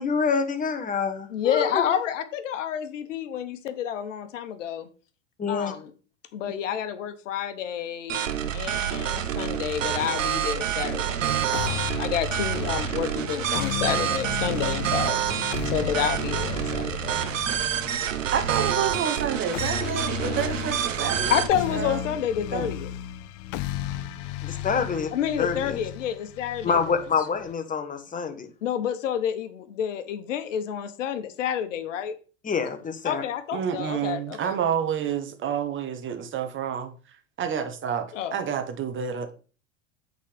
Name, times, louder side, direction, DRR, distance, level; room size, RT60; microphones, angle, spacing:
voice 1, 0.0-1.8 5.4-5.7 6.4-6.5 15.8-15.9 24.4-25.1 25.4-25.8 26.6-28.5 32.4-33.2, left 5 dB, 20° left, 1.3 m, -27 dB
voice 2, 1.3-4.9 5.5-5.9 6.3-8.2 8.5-15.2 15.6-17.3 21.3-22.9 25.1-26.8 28.6-32.1 33.0-34.6 38.1-38.3, left 9 dB, 75° left, 1.1 m, -29 dB
sound 1, 8.1-21.5, right 10 dB, 85° right, 0.9 m, -28 dB
sound 2, 11.5-27.5, left 14 dB, 50° left, 0.6 m, -35 dB
voice 3, 18.3-21.4 21.7-22.1 22.5-22.7 24.9-25.0 33.5-39.3, right 8 dB, 30° right, 1.2 m, -29 dB
8.5 x 4.0 x 5.1 m
hypercardioid pair, 95°, 38 cm